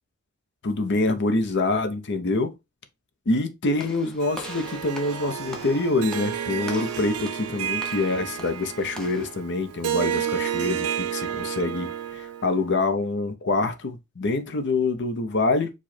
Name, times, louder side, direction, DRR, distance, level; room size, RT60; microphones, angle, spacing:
voice 1, 0.6-2.5 3.3-15.7, left 2 dB, 50° left, 0.7 m, -25 dB
Walk footsteps / Slam, 3.8-9.3, left 1 dB, 5° left, 0.7 m, -42 dB
Harp, 4.2-12.6, right 9 dB, 85° right, 0.6 m, -31 dB
4.9 x 2.3 x 4.2 m
head